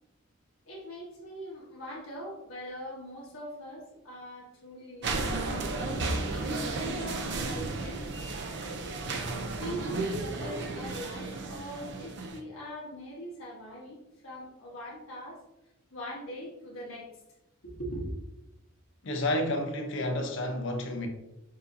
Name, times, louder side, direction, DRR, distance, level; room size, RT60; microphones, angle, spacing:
voice 1, 0.6-5.4 6.2-8.0 9.6-14.0 14.2-15.4 15.9-17.1 17.6-18.1, equal, 70° left, 1.3 m, -41 dB
sound 1, 5.0-12.4, right 3 dB, 50° right, 0.5 m, -34 dB
voice 2, 19.0-21.1, left 1 dB, 55° left, 0.6 m, -30 dB
6.7 x 2.6 x 2.6 m
head